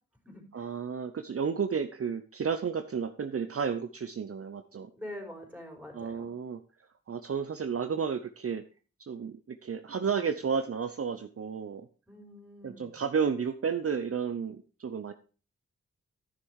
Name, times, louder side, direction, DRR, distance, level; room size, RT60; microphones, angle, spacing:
voice 1, 0.5-4.9 5.9-6.6 7.1-8.6 9.1-11.9 12.6-15.1, right 6 dB, 50° right, 9 dB, 0.7 m, -32 dB
voice 2, 4.9-6.3 12.1-12.9, left 1 dB, 5° right, 1 dB, 4.4 m, -45 dB
11.0 x 6.5 x 4.7 m, 0.36 s
cardioid pair, 55°, 29 cm